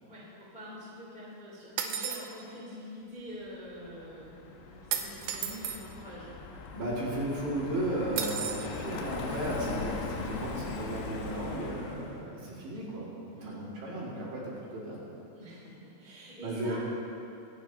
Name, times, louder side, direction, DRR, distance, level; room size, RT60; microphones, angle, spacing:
voice 1, 0.0-6.2 13.4-13.6 15.3-16.8, equal, 15° left, -8 dB, 1.6 m, -45 dB
sound 1, 1.8-2.3 4.9-5.8 8.2-8.7, right 8 dB, 85° right, 2.6 m, -33 dB
Car passing by, 3.7-12.2, left 4 dB, 75° left, 3.0 m, -40 dB
voice 2, 6.7-15.0 16.4-16.8, right 1 dB, 55° right, -7 dB, 3.6 m, -35 dB
25.5 x 9.7 x 2.8 m, 2.7 s
omnidirectional pair, 5.7 m